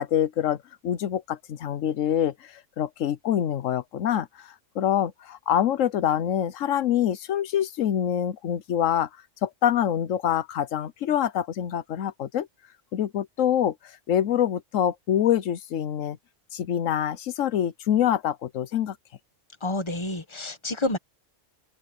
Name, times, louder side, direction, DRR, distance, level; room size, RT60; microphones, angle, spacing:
voice 1, 0.0-9.1 9.4-12.5 12.9-16.2 16.5-19.0, left 10 dB, 85° left, 1.1 m, -25 dB
voice 2, 19.6-21.0, left 2 dB, 25° left, 1.5 m, -29 dB
open air
omnidirectional pair, 1.3 m